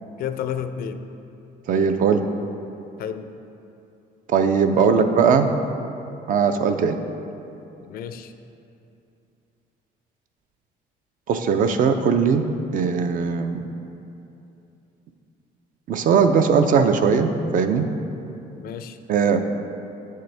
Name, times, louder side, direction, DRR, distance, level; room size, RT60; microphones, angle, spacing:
voice 1, 0.2-1.1 3.0-3.3 4.7-5.2 7.8-8.3 18.6-19.0, left 8 dB, 60° left, 10 dB, 0.4 m, -31 dB
voice 2, 1.7-2.2 4.3-5.5 6.3-7.0 11.3-12.5 12.7-13.6 15.9-17.9 19.1-19.4, right 6 dB, 55° right, 7 dB, 0.5 m, -19 dB
8.0 x 6.5 x 3.4 m, 2.8 s
cardioid pair, 110°, 17 cm